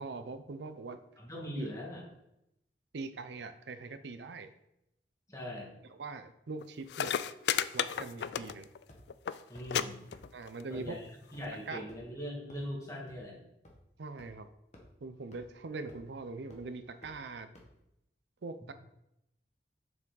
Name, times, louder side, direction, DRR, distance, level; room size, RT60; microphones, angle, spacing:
voice 1, 0.0-1.0 1.6-1.7 2.9-4.5 5.8-7.1 7.7-8.7 10.3-11.0 11.7-11.8 14.0-14.5 15.0-17.5 18.4-18.7, right 3 dB, 75° right, 10 dB, 0.5 m, -42 dB
voice 2, 1.2-2.0 5.3-5.7 9.5-10.0 10.7-11.0 11.3-13.4, equal, 20° left, -2 dB, 2.0 m, -40 dB
sound 1, 6.6-6.7 6.9-8.8 9.1-9.4 9.7-9.8 10.1-10.6 11.4-11.5, left 9 dB, 65° left, 0.3 m, -32 dB
sound 2, 8.4-8.6 8.9-9.0 9.5-9.6 10.1-10.2 10.7-10.8 11.3-11.4 11.9-12.1 12.5-12.6 13.1-13.2 13.6-13.7 14.2-14.3 14.7-14.8 15.3-15.4 15.9-16.1 16.5-16.6 17.0-17.1 17.5-17.6, left 1 dB, 40° left, 1.3 m, -54 dB
7.0 x 5.9 x 3.9 m, 0.83 s
head